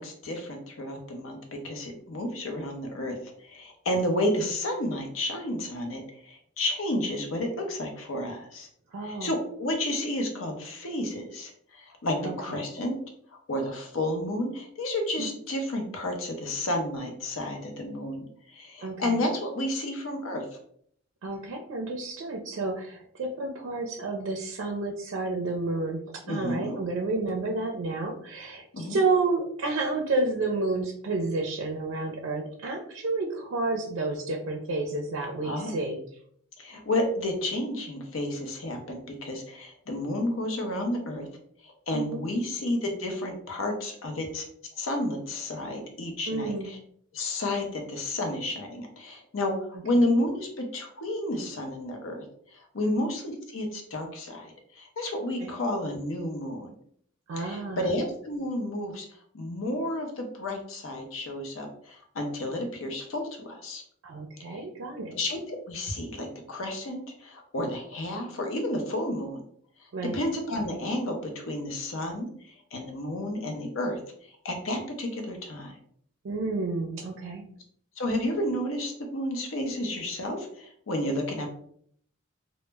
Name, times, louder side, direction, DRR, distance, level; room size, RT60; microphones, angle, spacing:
voice 1, 0.0-1.4 1.6-3.2 3.4-8.7 9.0-12.9 13.5-20.6 26.3-26.8 28.7-29.0 35.4-35.7 36.6-41.3 41.6-44.4 44.8-46.8 47.1-52.2 52.5-56.7 57.4-59.1 59.3-63.8 64.4-64.6 65.1-69.4 70.1-74.0 74.4-75.8 78.0-81.5, left 1 dB, 80° left, 3 dB, 0.6 m, -31 dB
voice 2, 8.9-9.3 12.2-12.6 15.2-15.3 18.8-19.2 21.2-26.0 26.3-36.0 41.9-42.2 46.3-46.7 52.8-53.0 55.4-55.5 57.3-57.9 64.0-65.1 69.9-70.2 76.2-77.4, right 3 dB, 70° right, 1 dB, 0.4 m, -30 dB
2.0 x 2.0 x 3.2 m, 0.63 s
head